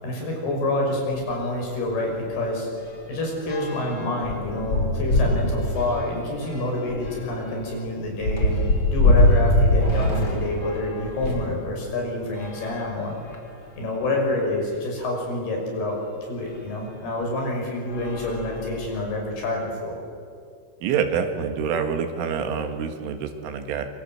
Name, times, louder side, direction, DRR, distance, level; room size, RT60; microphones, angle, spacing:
voice 1, 0.0-2.7 3.1-8.6 8.9-13.2 13.8-16.0 16.3-20.0, left 2 dB, 55° left, 0 dB, 7.9 m, -27 dB
sound 1, 1.1-1.3 1.7-1.8 2.1-11.6 12.3-13.6 14.3-14.4 14.7-14.8 16.5-16.6 17.2-17.5 17.9-19.1, left 1 dB, 30° left, 2.8 m, -24 dB
voice 2, 20.8-23.9, right 7 dB, 85° right, 6 dB, 4.4 m, -26 dB
26.0 x 25.0 x 7.9 m, 2.3 s
omnidirectional pair, 5.5 m